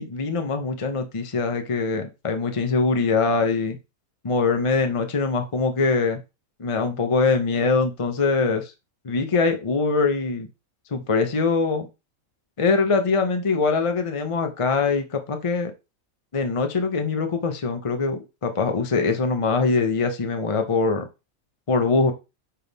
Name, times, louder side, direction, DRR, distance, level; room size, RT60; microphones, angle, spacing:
voice 1, 0.0-3.8 4.2-6.2 6.6-8.7 9.0-10.5 10.9-11.9 12.6-15.7 16.3-21.1 21.7-22.1, left 4 dB, 30° left, 6 dB, 0.6 m, -23 dB
6.6 x 3.5 x 4.0 m, 0.26 s
omnidirectional pair, 1.5 m